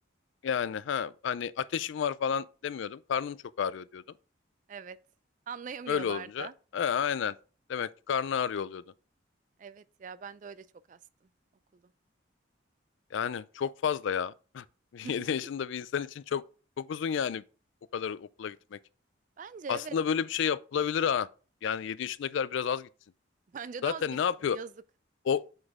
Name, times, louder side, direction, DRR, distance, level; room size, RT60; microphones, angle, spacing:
voice 1, 0.4-4.0 5.9-6.5 6.7-7.4 7.7-8.8 13.1-14.6 14.9-16.4 16.8-17.4 17.9-18.8 19.7-21.3 21.6-22.9 23.8-24.6 25.3-25.4, left 7 dB, 70° left, 0.3 m, -31 dB
voice 2, 5.5-6.5 9.6-11.0 11.7-11.8 15.0-15.3 19.4-20.0 23.5-24.7, right 6 dB, 40° right, 0.3 m, -41 dB
7.9 x 3.9 x 3.6 m
head